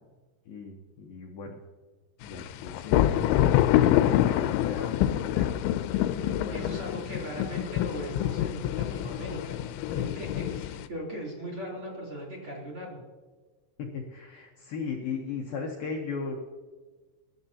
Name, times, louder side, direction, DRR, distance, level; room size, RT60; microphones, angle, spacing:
voice 1, 0.5-1.6 2.2-3.3 3.8-5.6 6.1-6.8 13.8-16.4, left 5 dB, 70° left, 0 dB, 2.4 m, -37 dB
sound 1, 2.3-10.9, left 12 dB, 90° left, 3.0 m, -26 dB
voice 2, 6.5-13.0, equal, 30° right, -4 dB, 3.7 m, -39 dB
23.0 x 11.0 x 2.9 m, 1.3 s
omnidirectional pair, 5.2 m